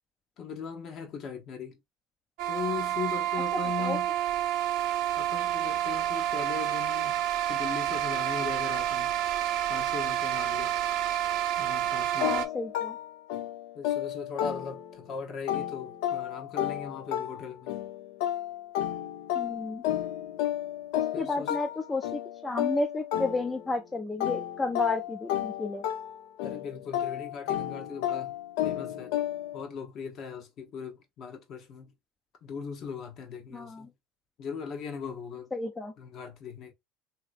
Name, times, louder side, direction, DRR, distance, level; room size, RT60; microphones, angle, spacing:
voice 1, 0.4-1.8 2.5-4.1 5.2-9.1 9.7-10.8 11.6-12.4 13.7-17.7 21.1-21.6 26.4-28.3 28.6-29.2 29.5-31.9 32.4-33.9 34.4-35.5 36.0-36.7, left 6 dB, 50° left, 0.9 m, -39 dB
sound 1, 2.4-12.5, right 12 dB, 65° right, 0.6 m, -29 dB
voice 2, 3.5-4.0 12.2-13.0 19.3-19.8 21.2-25.8 33.5-33.9 35.5-35.9, left 3 dB, 15° left, 0.4 m, -32 dB
sound 2, 12.2-15.1 15.5-23.8 24.2-29.6, left 12 dB, 80° left, 0.6 m, -32 dB
3.1 x 2.8 x 2.4 m
supercardioid pair, 110°, 0 cm